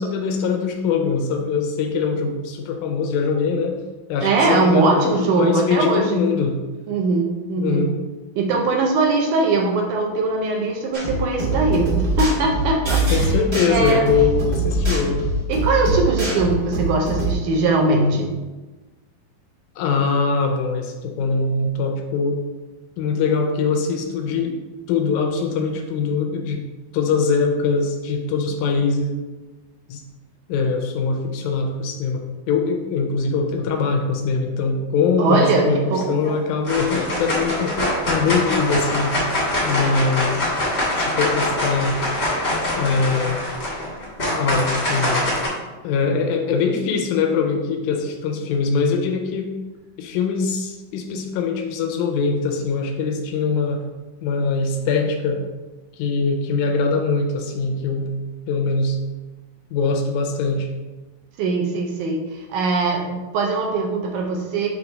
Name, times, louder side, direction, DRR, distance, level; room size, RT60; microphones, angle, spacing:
voice 1, 0.0-3.8 4.1-6.6 7.6-7.9 11.7-11.8 13.1-15.2 19.8-22.5 23.0-24.5 24.9-26.6 26.9-29.1 29.9-30.0 30.5-39.3 39.7-40.5 41.0-42.0 42.7-43.4 44.4-45.3 45.8-49.5 50.0-53.8 54.2-55.4 56.0-58.1 58.5-59.0 59.7-60.7, left 5 dB, 90° left, 3 dB, 1.7 m, -22 dB
voice 2, 4.2-6.2 6.9-7.9 8.4-13.4 13.7-14.0 15.5-18.3 35.2-36.2 61.4-64.7, right 3 dB, 80° right, 1 dB, 1.8 m, -21 dB
sound 1, 10.9-17.3, right 1 dB, 50° right, 0.8 m, -23 dB
sound 2, 35.9-36.3 36.6-45.5, left 1 dB, 50° left, 0.7 m, -23 dB
6.2 x 3.0 x 5.2 m, 1.2 s
omnidirectional pair, 4.3 m